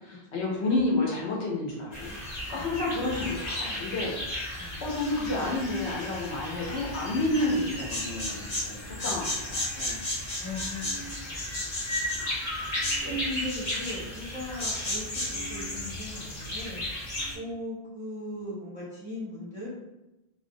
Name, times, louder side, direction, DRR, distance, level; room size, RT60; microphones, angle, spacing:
voice 1, 0.0-4.1 4.8-10.0 13.0-13.2, left 2 dB, 75° left, -4 dB, 1.0 m, -30 dB
sound 1, 1.9-17.3, left 1 dB, 40° left, 0.8 m, -34 dB
voice 2, 2.5-2.9 4.6-4.8 8.9-9.3 10.4-12.8 13.1-16.8 17.3-19.7, left 1 dB, 10° right, -7 dB, 0.5 m, -39 dB
2.4 x 2.1 x 2.6 m, 0.98 s
omnidirectional pair, 1.1 m